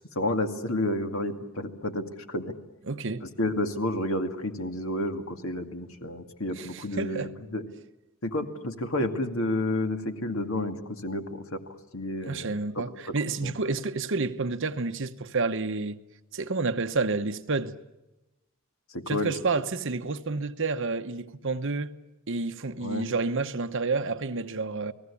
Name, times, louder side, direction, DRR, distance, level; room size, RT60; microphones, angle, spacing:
voice 1, 0.2-2.5 3.2-7.6 8.2-11.6 11.9-12.5 12.8-12.9 13.4-13.5 18.9-19.3 22.8-23.1, left 1 dB, 75° left, 2.2 m, -30 dB
voice 2, 2.9-3.2 6.6-7.3 12.2-16.0 16.3-17.8 19.1-21.9 22.3-24.9, right 3 dB, 60° right, 1.1 m, -29 dB
30.0 x 19.0 x 8.5 m
head